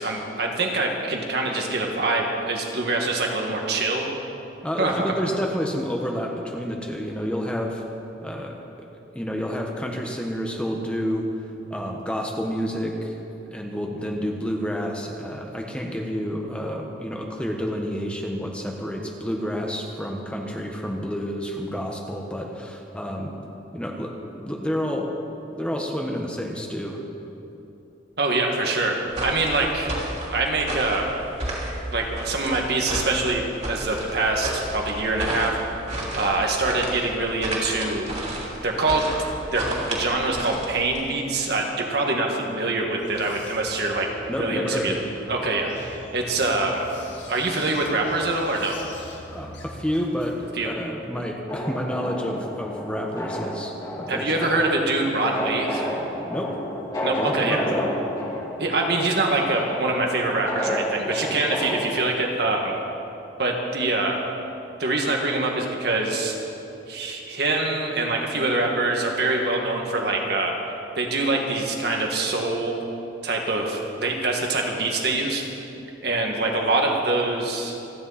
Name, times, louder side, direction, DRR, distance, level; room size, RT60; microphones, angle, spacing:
voice 1, 0.0-4.1 4.8-5.1 28.2-29.9 30.3-31.0 31.9-35.6 36.1-38.1 38.6-39.1 39.5-44.1 44.4-45.0 45.3-46.8 47.3-48.8 50.6-50.7 54.1-55.9 57.0-57.6 58.6-62.8 63.4-64.2 64.8-66.4 66.9-70.5 71.0-72.8 73.2-75.4 76.0-77.8, right 2 dB, 60° right, 1 dB, 1.9 m, -24 dB
voice 2, 4.6-7.8 8.2-8.9 9.1-11.3 11.7-13.2 13.5-23.3 23.7-25.1 25.5-27.0 44.3-45.0 49.3-53.7 54.0-54.6 56.3-56.6 57.2-57.9, equal, 5° left, 0 dB, 1.2 m, -29 dB
sound 1, 29.1-41.1, right 1 dB, 40° right, 3.2 m, -32 dB
sound 2, 43.0-50.5, left 2 dB, 75° left, 2.0 m, -44 dB
sound 3, 51.5-62.1, equal, 20° left, 2.7 m, -31 dB
27.5 x 10.5 x 4.3 m, 2.9 s
head